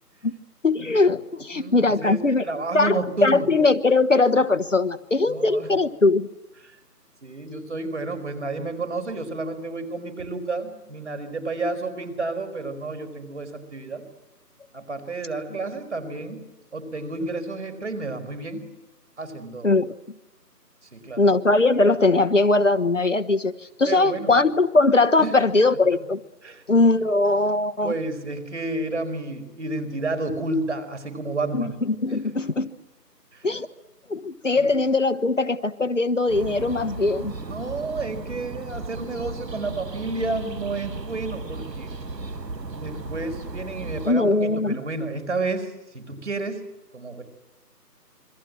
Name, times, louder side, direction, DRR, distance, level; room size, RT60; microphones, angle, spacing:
voice 1, 0.6-2.4 2.7-6.3 19.6-19.9 21.2-23.5 23.8-26.2 26.7-27.9 31.5-32.7 33.4-33.7 34.1-37.3 44.0-44.8, left 3 dB, 50° left, 10 dB, 1.3 m, -20 dB
voice 2, 1.4-3.5 5.3-5.7 6.6-6.8 7.2-14.0 14.7-16.4 16.7-18.6 19.2-19.7 20.9-21.3 23.8-24.3 25.2-25.4 26.4-26.6 27.8-31.7 32.2-32.3 33.3-33.5 34.6-34.8 37.4-41.9 42.8-46.6 46.9-47.2, right 3 dB, 45° right, 7 dB, 4.8 m, -31 dB
sound 1, 36.3-44.1, right 3 dB, 85° right, 1.6 m, -35 dB
27.0 x 24.0 x 7.7 m, 0.96 s
figure-of-eight pair, 170°, 48 cm